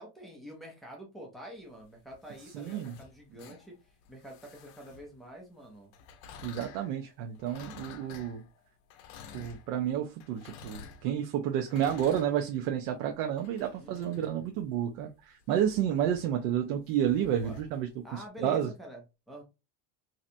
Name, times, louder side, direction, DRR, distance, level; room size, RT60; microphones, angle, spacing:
voice 1, 0.0-5.9 13.8-14.1 17.3-17.6 18.0-19.4, right 1 dB, ahead, 0.3 m, -47 dB
sound 1, 1.8-5.3 5.9-18.2, left 5 dB, 55° left, 0.6 m, -52 dB
voice 2, 2.5-2.9 6.4-8.4 9.3-18.7, right 10 dB, 65° right, 0.6 m, -30 dB
3.2 x 2.8 x 2.5 m
cardioid pair, 165°, 45 cm